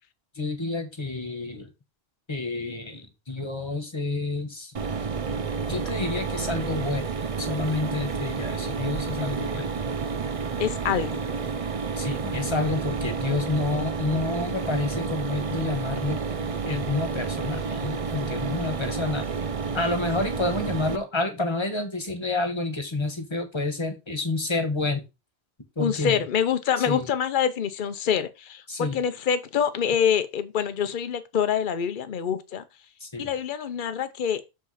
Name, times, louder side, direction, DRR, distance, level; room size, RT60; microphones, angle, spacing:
voice 1, 0.3-1.7 2.3-4.7 5.7-7.1 7.4-9.7 12.0-16.2 16.6-19.3 19.7-25.0 25.8-26.2 26.9-27.1 28.7-29.0 33.0-33.3, left 3 dB, 25° left, 1.5 m, -29 dB
Mechanisms, 4.7-21.0, right 5 dB, 40° right, 0.6 m, -30 dB
voice 2, 10.6-11.3 25.8-32.6 33.2-34.4, left 8 dB, 50° left, 0.9 m, -26 dB
7.0 x 4.9 x 4.1 m
omnidirectional pair, 1.1 m